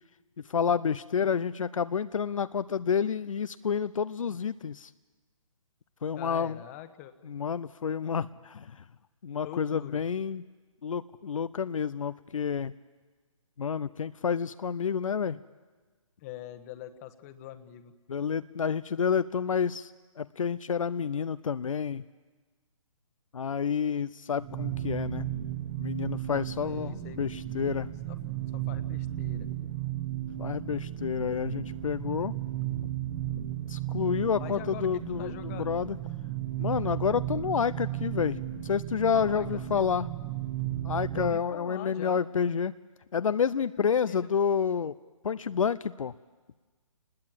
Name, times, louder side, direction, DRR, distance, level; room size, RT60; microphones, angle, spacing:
voice 1, 0.5-4.9 6.0-6.6 7.2-8.7 9.2-10.4 10.8-12.7 13.6-15.4 18.1-19.9 20.2-22.0 23.3-25.3 25.8-27.9 30.4-32.3 33.7-36.0 36.6-40.1 40.8-42.7 43.1-44.9 45.2-46.1, left 7 dB, 70° left, 13 dB, 0.7 m, -29 dB
voice 2, 6.2-7.1 9.4-10.0 16.2-17.9 26.6-27.2 28.1-29.5 34.4-34.9 35.2-35.7 39.1-39.9 41.1-42.2 44.1-44.3, left 12 dB, 25° left, 10 dB, 1.3 m, -44 dB
sound 1, 24.4-41.4, right 13 dB, 25° right, 1.3 m, -35 dB
28.5 x 20.5 x 7.6 m, 1.3 s
hypercardioid pair, 145°, 18 cm